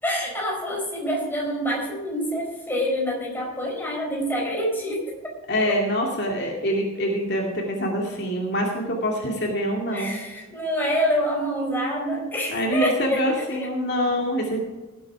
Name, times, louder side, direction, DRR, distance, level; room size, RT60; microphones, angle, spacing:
voice 1, 0.0-5.1 9.9-13.7, equal, 10° left, -2 dB, 4.5 m, -27 dB
voice 2, 5.5-10.2 12.5-14.6, equal, 50° left, -1 dB, 2.3 m, -25 dB
17.5 x 8.6 x 4.8 m, 1.2 s
head